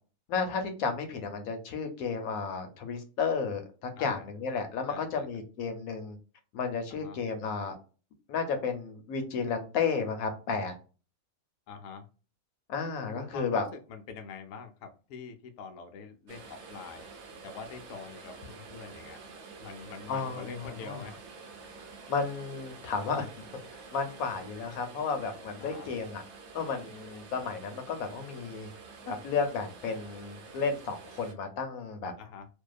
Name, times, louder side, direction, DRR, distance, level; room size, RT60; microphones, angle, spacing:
voice 1, 0.3-6.2 6.5-7.7 8.3-10.7 12.7-13.6 20.1-20.5 20.8-21.0 22.1-23.3 23.7-26.2 26.5-28.7 29.1-32.1, left 5 dB, 85° left, 6 dB, 1.1 m, -32 dB
voice 2, 4.0-4.3 4.9-5.3 6.9-7.2 11.7-12.1 13.0-13.6 13.9-17.1 17.4-19.2 19.6-21.2 25.6-25.9 32.2-32.5, left 5 dB, 70° left, 5 dB, 0.8 m, -44 dB
sound 1, 16.3-31.3, right 4 dB, 65° right, 0.8 m, -48 dB
2.7 x 2.2 x 2.3 m, 0.35 s
omnidirectional pair, 1.5 m